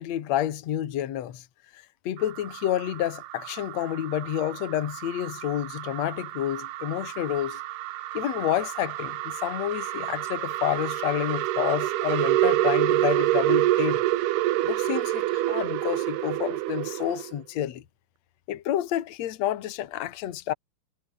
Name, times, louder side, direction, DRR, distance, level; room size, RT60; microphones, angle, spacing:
voice 1, 0.0-1.4 1.7-7.6 8.1-14.0 14.6-17.8 18.5-20.5, left 12 dB, 55° left, 2.0 m, -29 dB
Emmanuel Cortes Ship Noise, 2.2-17.3, right 16 dB, 75° right, 2.6 m, -28 dB
omnidirectional pair, 5.5 m